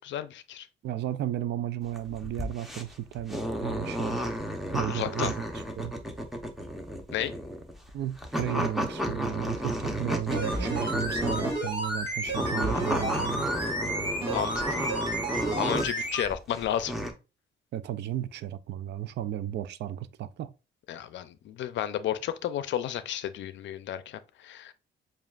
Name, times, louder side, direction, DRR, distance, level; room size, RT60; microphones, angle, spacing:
voice 1, 0.0-0.7 4.9-5.3 7.1-7.3 14.3-14.8 15.6-16.9 20.9-24.7, left 11 dB, 70° left, 0.5 m, -32 dB
voice 2, 0.8-4.2 4.7-5.9 7.9-13.5 17.7-20.5, right 12 dB, 60° right, 0.4 m, -34 dB
sound 1, 1.8-11.7 12.2-16.1 16.5-17.1, equal, ahead, 0.8 m, -32 dB
sound 2, 10.3-16.3 16.6-16.7, right 1 dB, 25° right, 1.8 m, -32 dB
7.2 x 2.4 x 2.4 m
cardioid pair, 90°, 20 cm